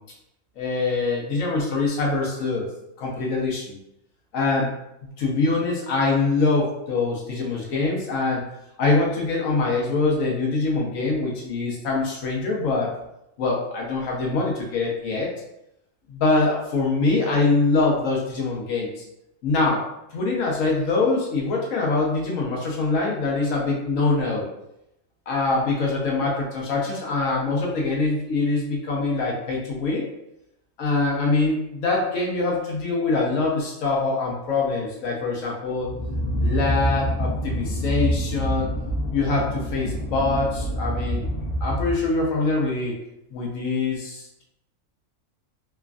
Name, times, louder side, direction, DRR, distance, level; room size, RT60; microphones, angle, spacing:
voice 1, 0.6-2.7 3.0-3.8 4.3-4.7 5.0-8.4 8.8-12.9 13.4-15.3 16.1-19.0 19.4-24.5 25.3-30.1 30.8-35.9 36.4-38.7 39.1-43.0 43.3-44.4, left 3 dB, 85° left, -2 dB, 1.2 m, -24 dB
sound 1, 35.8-42.3, equal, 65° left, 0.7 m, -27 dB
3.1 x 2.3 x 2.4 m, 0.83 s
omnidirectional pair, 1.4 m